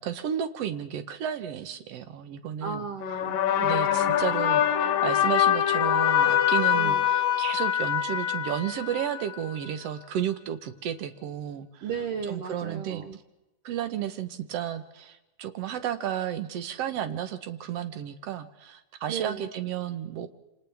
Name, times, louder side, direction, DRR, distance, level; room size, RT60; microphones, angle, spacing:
voice 1, 0.0-2.9 3.6-11.9 12.3-13.0 13.6-20.3, right 10 dB, 65° right, 9 dB, 1.7 m, -32 dB
voice 2, 2.6-3.8 6.7-7.0 11.8-13.2 19.1-19.5, right 6 dB, 80° right, 5 dB, 1.3 m, -35 dB
sound 1, 3.0-9.4, left 10 dB, 85° left, 2.6 m, -24 dB
27.5 x 27.5 x 3.5 m, 1.0 s
omnidirectional pair, 3.9 m